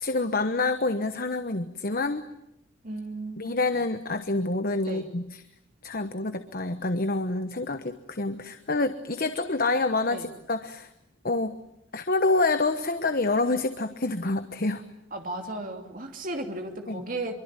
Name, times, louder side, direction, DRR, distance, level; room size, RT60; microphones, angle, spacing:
voice 1, 0.0-2.2 3.4-5.4 5.8-10.9 11.2-11.6 11.9-14.8 16.9-17.0, left 2 dB, 45° left, 9 dB, 1.2 m, -27 dB
voice 2, 2.8-3.5 3.7-3.8 4.9-5.1 10.1-10.3 15.1-17.3, right 2 dB, 45° right, 3 dB, 2.8 m, -35 dB
25.5 x 24.0 x 9.1 m, 0.81 s
head